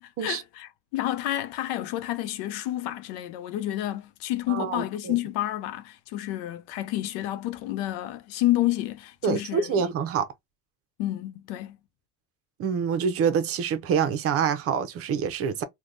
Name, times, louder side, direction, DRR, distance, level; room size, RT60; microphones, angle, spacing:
voice 1, 0.0-9.8 11.0-11.8, left 14 dB, 80° left, 0.6 m, -30 dB
voice 2, 4.5-5.1 9.2-10.3 12.6-15.6, right 7 dB, 50° right, 0.7 m, -26 dB
3.3 x 2.2 x 2.5 m
supercardioid pair, 115°, 30 cm